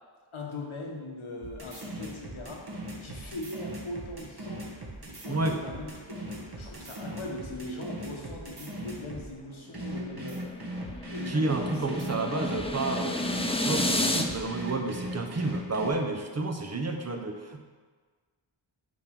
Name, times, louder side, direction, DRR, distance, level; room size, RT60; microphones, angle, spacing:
voice 1, 0.3-2.6 3.0-4.7 5.2-10.4 11.1-12.0 12.2-12.7, left 2 dB, 75° left, 0 dB, 1.5 m, -40 dB
sound 1, 1.4-9.3 9.7-15.9, right 1 dB, 50° right, 1.6 m, -38 dB
voice 2, 5.3-5.6 11.3-13.2 13.5-17.6, right 3 dB, 30° right, 3 dB, 0.9 m, -30 dB
sound 2, 10.0-14.2, left 1 dB, 10° left, 0.6 m, -31 dB
9.5 x 3.5 x 6.0 m, 1.5 s
wide cardioid pair, 80°, 49 cm